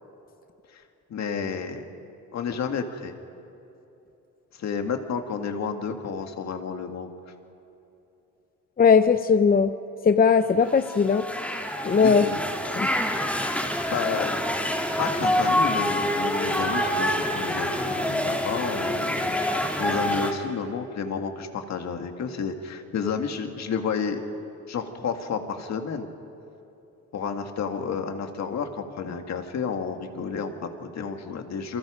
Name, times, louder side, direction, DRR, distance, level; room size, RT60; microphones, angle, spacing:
voice 1, 1.1-1.8 2.3-3.1 4.6-7.1 11.9-12.4 13.9-14.4 15.0-24.2 24.7-26.1 27.1-31.8, left 6 dB, 60° left, 5 dB, 2.1 m, -31 dB
voice 2, 8.8-9.7 10.0-11.2 11.8-12.3 12.8-12.9, left 6 dB, 30° left, 10 dB, 0.7 m, -19 dB
sound 1, 10.7-20.3, left 1 dB, 5° left, 3.4 m, -26 dB
29.0 x 23.5 x 5.2 m, 2.9 s
cardioid pair, 90°, 30 cm